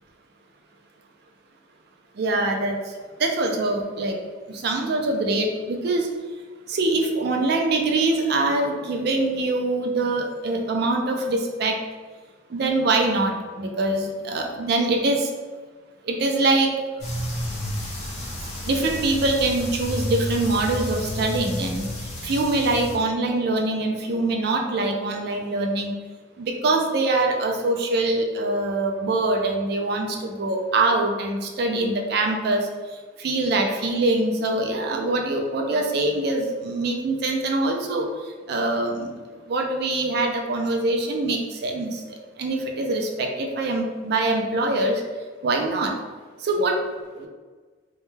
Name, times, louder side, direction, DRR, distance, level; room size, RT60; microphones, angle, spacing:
voice 1, 2.2-2.8 3.2-4.2 4.5-6.1 6.7-11.8 12.5-15.3 16.0-16.7 18.6-21.9 22.2-25.9 26.4-32.7 33.2-38.1 38.5-39.1 39.5-42.0 42.4-45.0 45.4-45.9 46.4-46.8 47.2-47.3, right 2 dB, 55° right, 2 dB, 0.4 m, -24 dB
sound 1, 17.0-23.0, left 1 dB, 35° left, 0.6 m, -31 dB
2.2 x 2.1 x 3.1 m, 1.4 s
head